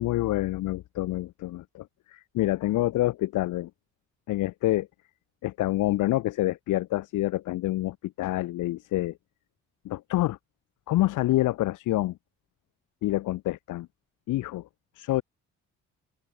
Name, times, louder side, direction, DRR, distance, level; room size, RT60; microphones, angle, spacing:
voice 1, 0.0-3.7 4.3-4.9 5.4-9.2 9.8-10.4 10.9-12.2 13.0-13.9 14.3-14.7 14.9-15.2, left 16 dB, 85° left, 1.4 m, -27 dB
open air
cardioid pair, 90°, 30 cm